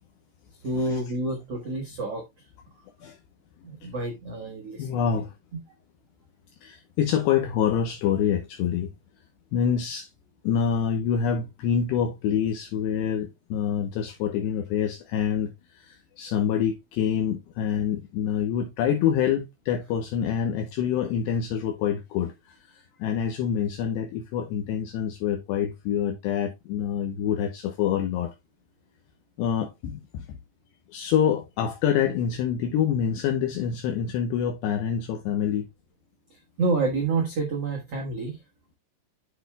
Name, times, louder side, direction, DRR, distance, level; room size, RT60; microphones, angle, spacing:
voice 1, 0.6-2.2 3.6-5.1 36.3-38.4, right 3 dB, 85° right, 1.3 m, -28 dB
voice 2, 4.8-5.3 6.6-8.9 9.5-10.1 10.4-28.3 29.4-30.4 30.9-35.7, left 8 dB, 75° left, 2.7 m, -26 dB
11.5 x 6.1 x 2.3 m
omnidirectional pair, 5.5 m